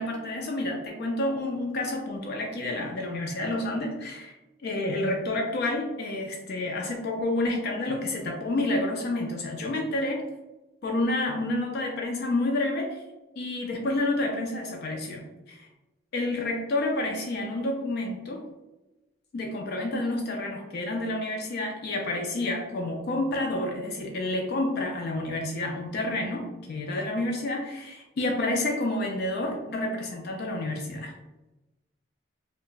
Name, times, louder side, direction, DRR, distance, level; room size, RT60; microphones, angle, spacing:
voice 1, 0.0-4.3 4.6-10.3 10.8-13.0 13.4-15.7 16.1-18.4 19.3-31.1, left 2 dB, 50° left, 1 dB, 0.3 m, -29 dB
2.2 x 2.0 x 3.7 m, 1.0 s
head